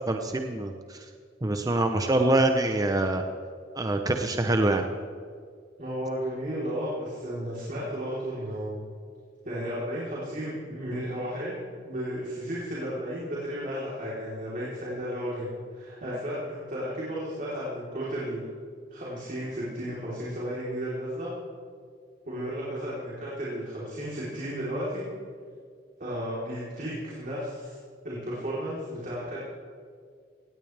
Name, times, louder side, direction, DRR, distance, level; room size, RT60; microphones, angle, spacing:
voice 1, 0.1-1.0 1.4-3.2 3.8-4.8, right 2 dB, 20° right, 5 dB, 0.7 m, -25 dB
voice 2, 5.8-8.7 9.4-11.6 11.8-18.4 18.9-21.3 22.3-25.0 26.0-27.8 28.0-29.4, equal, 45° right, -7 dB, 3.6 m, -33 dB
18.0 x 17.5 x 3.4 m, 2.1 s
head